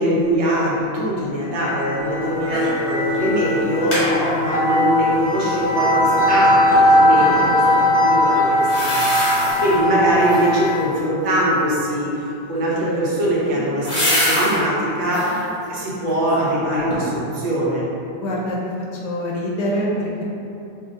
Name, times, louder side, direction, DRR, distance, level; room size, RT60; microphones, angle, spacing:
voice 1, 0.0-7.6 7.9-9.3 9.6-12.1 12.5-15.4 15.7-17.9, right 1 dB, 85° right, -7 dB, 1.6 m, -22 dB
sound 1, 1.5-10.9, left 1 dB, 25° right, 0.5 m, -19 dB
sound 2, 2.5-2.8 3.1-3.2 3.6-4.1 8.6-9.8 10.2-10.7 12.7-14.6 15.0-15.4 15.9-16.6 16.9-17.0, equal, 30° left, 0.6 m, -24 dB
voice 2, 7.1-7.9 18.2-18.6 18.9-20.2, equal, 75° left, -4 dB, 1.2 m, -26 dB
5.2 x 2.6 x 2.6 m, 2.8 s
omnidirectional pair, 2.0 m